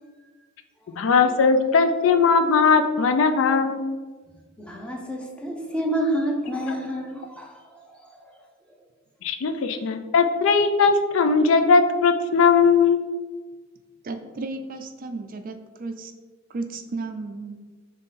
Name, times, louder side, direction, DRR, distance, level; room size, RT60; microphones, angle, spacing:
voice 1, 1.0-3.9 9.2-13.0, left 5 dB, 70° left, 8 dB, 0.4 m, -19 dB
voice 2, 4.6-7.6 7.9-8.1, right 1 dB, 5° left, 0 dB, 0.6 m, -28 dB
voice 3, 14.0-16.1 16.5-17.6, right 3 dB, 40° right, 7 dB, 0.3 m, -34 dB
3.7 x 3.1 x 4.1 m, 1.4 s
head